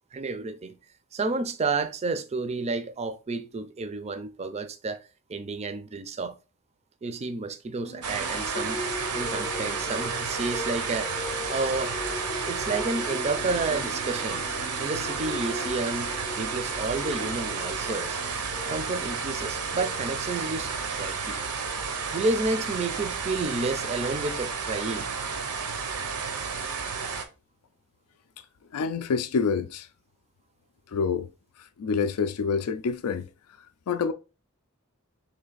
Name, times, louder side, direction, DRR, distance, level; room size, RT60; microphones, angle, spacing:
voice 1, 0.1-0.8 1.1-5.0 5.3-6.4 7.0-8.8 9.1-11.1 11.5-12.0 12.4-14.4 14.8-18.2 18.7-21.4 22.1-25.1, right 3 dB, 30° right, 0.4 m, -31 dB
sound 1, 7.8-23.4, left 2 dB, 25° left, 0.5 m, -40 dB
sound 2, 8.0-27.2, right 5 dB, 80° right, 0.7 m, -32 dB
voice 2, 28.7-29.9 30.9-31.3 31.6-33.3 33.9-34.1, left 5 dB, 75° left, 0.4 m, -27 dB
3.3 x 3.1 x 3.9 m
head